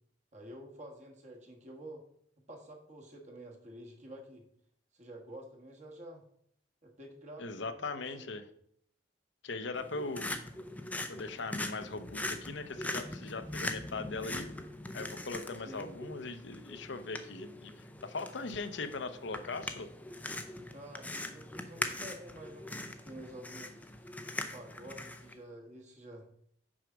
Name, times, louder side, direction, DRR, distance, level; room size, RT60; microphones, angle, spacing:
voice 1, 0.3-2.0 2.5-4.4 4.9-6.2 6.8-8.3 15.7-15.9 20.7-24.0 24.5-26.3, right 1 dB, 35° right, 0 dB, 1.3 m, -49 dB
voice 2, 7.4-8.4 9.4-10.5 11.1-14.5 14.9-19.9, left 3 dB, 65° left, 10 dB, 0.7 m, -40 dB
sound 1, 9.7-25.3, left 1 dB, 10° left, 0.5 m, -41 dB
6.2 x 4.9 x 6.0 m, 0.67 s
head